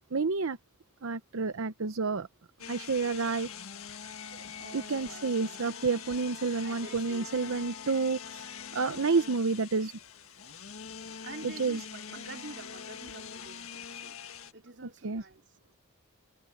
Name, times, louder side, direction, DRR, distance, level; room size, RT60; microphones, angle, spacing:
voice 1, 0.1-0.6 1.0-2.3 2.7-3.5 4.7-9.9 11.4-11.8 15.0-15.2, right 4 dB, 80° right, 0.7 m, -30 dB
sound 1, 2.6-14.5, left 7 dB, 90° left, 1.7 m, -44 dB
voice 2, 4.6-5.6 6.5-7.7 11.2-14.2 14.5-15.4, right 3 dB, 55° right, 2.5 m, -48 dB
head